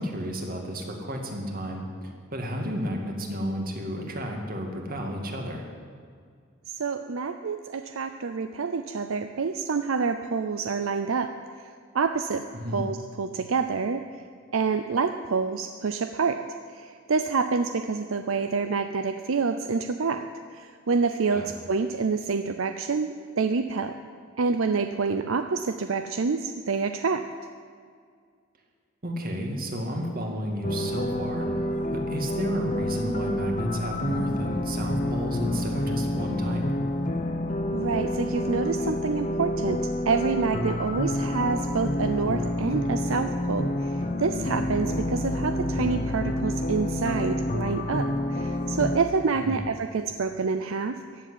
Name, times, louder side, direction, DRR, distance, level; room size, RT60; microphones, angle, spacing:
voice 1, 0.0-5.6 12.5-12.9 21.3-21.5 29.0-31.5 31.9-36.6 49.4-49.6, equal, 45° right, 2 dB, 2.2 m, -32 dB
voice 2, 6.7-11.3 11.9-12.5 12.7-14.0 14.5-16.4 16.7-20.2 20.5-24.0 24.4-27.3 37.7-51.0, right 4 dB, 75° right, 8 dB, 0.6 m, -27 dB
sound 1, 30.6-49.0, left 1 dB, 40° left, 1.1 m, -28 dB
15.0 x 7.5 x 9.9 m, 2.1 s
head